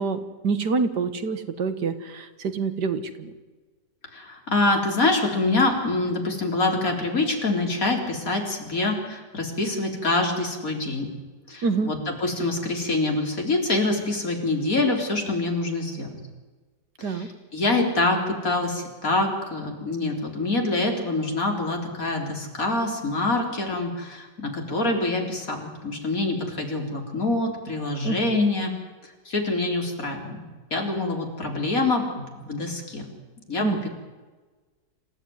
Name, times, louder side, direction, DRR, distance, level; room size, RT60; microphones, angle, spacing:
voice 1, 0.0-3.3 11.6-11.9 17.0-17.3 28.0-28.5 33.6-33.9, right 4 dB, 75° right, 10 dB, 2.1 m, -27 dB
voice 2, 4.1-11.1 11.5-16.2 17.0-28.7 29.0-30.4 30.7-33.0 33.5-33.9, left 2 dB, 50° left, 2 dB, 4.2 m, -25 dB
27.0 x 15.5 x 9.6 m, 1.3 s
omnidirectional pair, 1.8 m